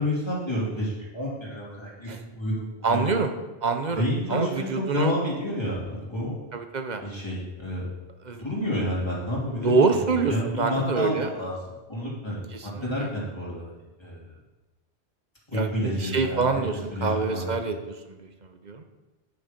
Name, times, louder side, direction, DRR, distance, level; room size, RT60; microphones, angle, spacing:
voice 1, 0.0-3.2 3.9-6.4 7.0-7.8 8.3-13.6 14.0-14.3 15.5-16.4 16.9-17.7, left 1 dB, 25° left, -6 dB, 2.9 m, -30 dB
voice 2, 2.8-3.3 3.6-4.0 4.3-5.1 6.5-7.0 8.3-8.4 9.6-11.3 12.5-12.7 13.0-13.1 15.5-16.7 17.0-18.8, right 4 dB, 45° right, 7 dB, 0.8 m, -26 dB
9.4 x 6.4 x 5.1 m, 1.1 s
omnidirectional pair, 1.2 m